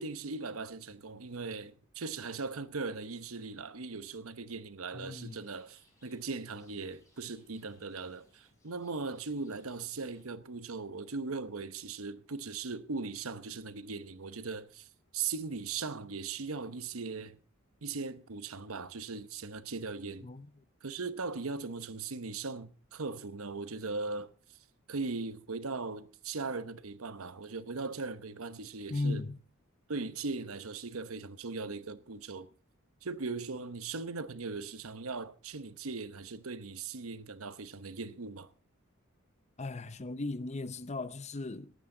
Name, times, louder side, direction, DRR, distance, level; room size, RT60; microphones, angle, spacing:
voice 1, 0.0-17.4 17.8-20.3 20.8-24.6 24.9-29.3 29.9-32.5 33.0-38.5, right 4 dB, 85° right, 1.0 m, -39 dB
voice 2, 4.9-5.4 20.2-20.5 28.9-29.4 39.6-41.7, left 2 dB, 35° left, 0.7 m, -36 dB
Rain, 5.1-10.2, left 2 dB, 15° left, 5.9 m, -68 dB
17.5 x 12.5 x 3.9 m
head